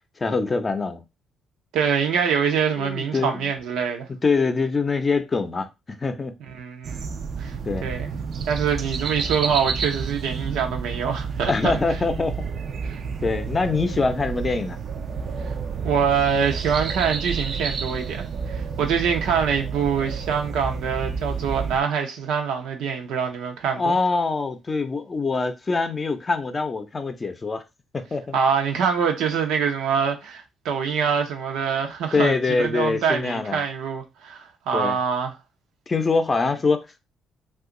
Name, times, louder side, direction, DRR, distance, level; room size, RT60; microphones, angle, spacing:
voice 1, 0.2-1.0 2.8-3.4 4.2-6.3 7.6-7.9 11.5-12.5 13.2-14.8 23.7-27.6 27.9-28.4 32.1-33.6 34.7-35.0 35.9-37.0, left 4 dB, 30° left, 0.6 m, -24 dB
voice 2, 1.7-4.1 6.5-7.1 7.4-7.6 7.8-8.1 8.5-11.7 12.9-13.0 15.8-24.0 28.3-35.3, right 6 dB, 90° right, 0.7 m, -24 dB
sound 1, 6.8-21.8, right 5 dB, 55° right, 0.4 m, -30 dB
2.8 x 2.4 x 3.7 m
cardioid pair, 90°, 0 cm